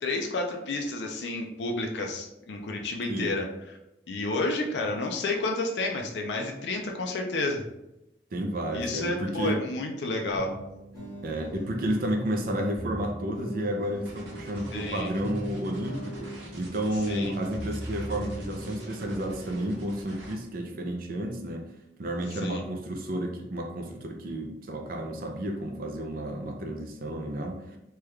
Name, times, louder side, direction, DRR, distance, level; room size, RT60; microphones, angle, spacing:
voice 1, 0.0-3.5 4.1-7.6 8.7-10.5 14.7-15.1 17.1-17.3 22.4-22.6, left 2 dB, 75° left, 2 dB, 0.4 m, -30 dB
voice 2, 8.3-9.6 11.2-21.6 22.0-27.8, right 1 dB, 55° right, 2 dB, 0.4 m, -31 dB
sound 1, 10.3-19.8, right 1 dB, 20° left, 1.2 m, -40 dB
sound 2, 14.0-20.3, right 1 dB, 80° right, 0.8 m, -46 dB
3.2 x 2.3 x 3.1 m, 0.90 s
head